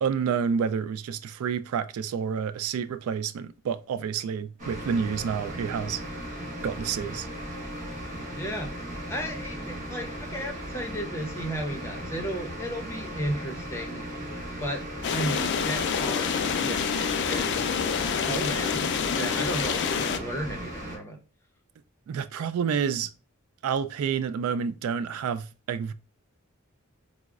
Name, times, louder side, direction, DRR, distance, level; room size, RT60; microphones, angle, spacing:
voice 1, 0.0-6.0 6.6-7.3 22.1-23.1 23.6-25.9, right 7 dB, 80° right, 0.3 m, -29 dB
sound 1, 4.6-21.0, equal, 40° right, 1.1 m, -37 dB
voice 2, 8.3-8.7 9.1-14.1 14.6-14.9 15.1-17.8 18.1-21.2, equal, 10° left, 0.7 m, -34 dB
sound 2, 15.0-20.2, left 7 dB, 55° left, 0.4 m, -27 dB
4.7 x 2.0 x 2.3 m
head